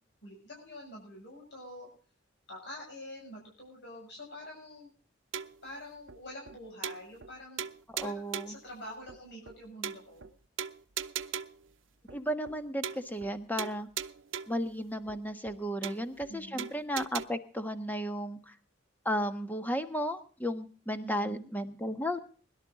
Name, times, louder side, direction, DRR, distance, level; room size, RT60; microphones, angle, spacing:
voice 1, 0.2-1.9 2.5-4.9 5.6-7.6 8.0-10.3 16.3-16.8 21.0-21.5, left 1 dB, 60° left, -1 dB, 6.8 m, -46 dB
sound 1, 5.3-5.7 6.1-6.2 6.5-6.6 6.8-7.3 7.6-8.6 9.1-9.2 9.5-9.6 9.8-10.3 10.6-11.7 12.1-12.2 12.5-12.6 12.8-13.3 13.6-14.7 15.1-15.2 15.5-15.6 15.8-16.3 16.6-17.2, right 8 dB, 80° right, 0.7 m, -39 dB
voice 2, 7.9-8.6 12.1-13.9 14.5-18.5 19.0-22.2, equal, 10° left, 8 dB, 1.3 m, -34 dB
22.0 x 12.0 x 3.8 m, 0.41 s
head